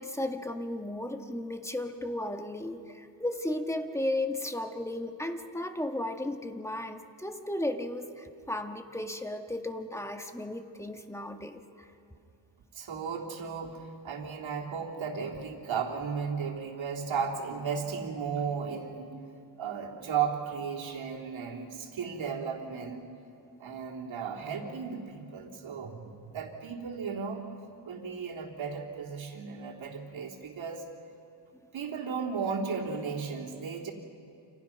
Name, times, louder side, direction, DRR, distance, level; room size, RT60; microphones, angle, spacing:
voice 1, 0.0-11.9, left 1 dB, 5° left, 5 dB, 1.6 m, -35 dB
voice 2, 12.7-19.1 19.6-23.1 23.6-27.5 27.8-30.9 31.7-33.9, right 6 dB, 85° right, -1 dB, 3.3 m, -35 dB
29.5 x 27.5 x 5.9 m, 2.6 s
cardioid pair, 90°, 45 cm